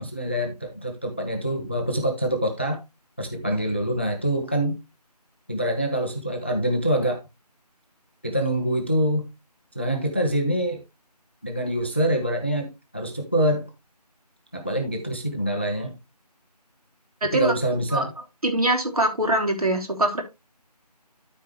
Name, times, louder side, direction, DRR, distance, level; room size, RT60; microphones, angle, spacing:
voice 1, 0.0-2.8 3.2-4.8 5.5-7.2 8.2-9.2 9.7-10.8 11.4-13.7 14.5-15.9 17.3-18.1, right 1 dB, 15° left, 0.7 m, -25 dB
voice 2, 17.2-17.5 17.9-18.0 18.4-20.2, right 1 dB, 60° right, 3.0 m, -23 dB
12.5 x 4.6 x 3.2 m
figure-of-eight pair, 175°, 21 cm